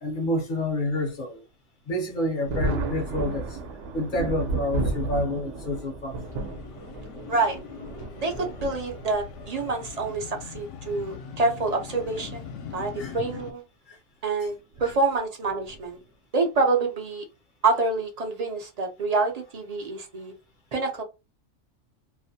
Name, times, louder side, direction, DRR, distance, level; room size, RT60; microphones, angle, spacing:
voice 1, 0.0-1.4 1.9-3.6 3.9-6.2 13.0-13.1 13.9-14.0, left 1 dB, 50° left, 0.7 m, -28 dB
Thunder, 2.4-9.5 10.5-10.6 12.1-12.3 12.7-12.8 14.7-15.0 15.7-16.0, right 3 dB, 75° right, 1.0 m, -33 dB
sound 1, 6.0-13.5, left 7 dB, 75° left, 0.9 m, -41 dB
voice 2, 8.2-13.6 14.2-16.0 16.3-17.2 17.6-20.3 20.7-21.0, right 3 dB, 45° right, 0.6 m, -27 dB
2.4 x 2.1 x 2.6 m
omnidirectional pair, 1.3 m